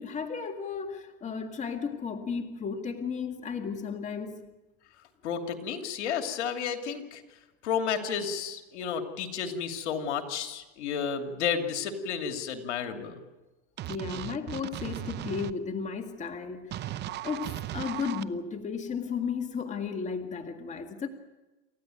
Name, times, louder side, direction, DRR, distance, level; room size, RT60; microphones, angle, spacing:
voice 1, 0.0-4.4 13.9-17.0 17.2-21.1, left 6 dB, 20° left, 2.0 m, -34 dB
voice 2, 5.2-7.2 7.6-13.1, left 7 dB, 80° left, 2.8 m, -32 dB
sound 1, 13.8-15.5 16.7-18.2, right 13 dB, 30° right, 0.7 m, -36 dB
28.0 x 14.5 x 9.2 m
supercardioid pair, 130°, 35 cm